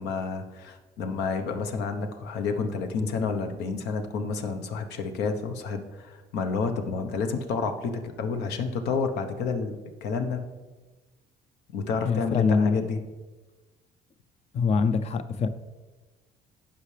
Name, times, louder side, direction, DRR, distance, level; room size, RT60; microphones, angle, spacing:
voice 1, 0.0-10.4 11.7-13.0, left 4 dB, 80° left, 6 dB, 1.0 m, -30 dB
voice 2, 12.0-12.9 14.5-15.5, left 5 dB, 40° left, 11 dB, 0.5 m, -24 dB
15.5 x 5.7 x 3.3 m, 1.3 s
cardioid pair, 110°, 17 cm